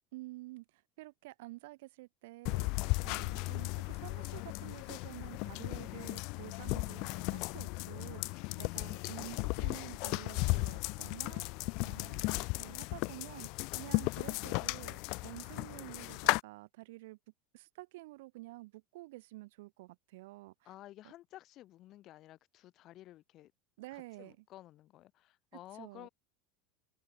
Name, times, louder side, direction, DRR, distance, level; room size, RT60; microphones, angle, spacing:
voice 1, 0.1-17.2 17.5-20.7 23.8-24.4 25.7-26.1, right 20 dB, 75° right, 0.8 m, -50 dB
sound 1, 2.4-16.4, left 28 dB, 60° left, 0.7 m, -36 dB
voice 2, 20.7-23.5 23.9-26.1, left 14 dB, 45° left, 3.5 m, -53 dB
open air
supercardioid pair, 130°, 0 cm